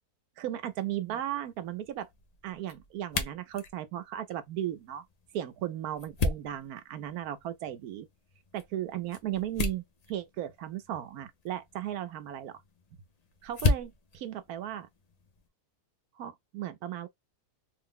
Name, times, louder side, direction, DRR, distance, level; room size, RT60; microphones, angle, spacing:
voice 1, 0.4-2.1 2.4-5.0 5.3-8.1 8.5-9.8 10.1-12.6 13.4-14.9 16.2-17.1, right 12 dB, 80° right, 1.1 m, -36 dB
sound 1, 0.6-15.5, left 3 dB, 60° left, 0.4 m, -37 dB
3.2 x 2.0 x 3.6 m
omnidirectional pair, 1.6 m